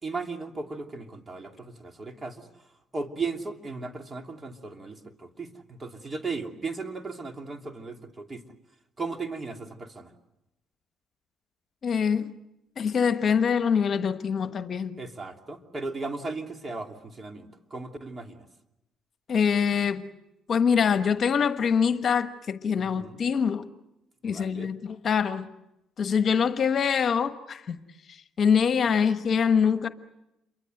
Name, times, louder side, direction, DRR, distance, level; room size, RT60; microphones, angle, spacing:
voice 1, 0.0-8.4 9.0-10.1 15.0-18.5 22.7-23.2 24.2-24.7, right 3 dB, 30° right, 3.0 m, -36 dB
voice 2, 11.8-12.3 12.8-15.0 19.3-20.1 20.5-23.7 24.2-25.5 26.0-27.8 28.1-29.9, left 6 dB, 50° left, 1.3 m, -24 dB
29.0 x 23.5 x 7.9 m
cardioid pair, 80°, 0 cm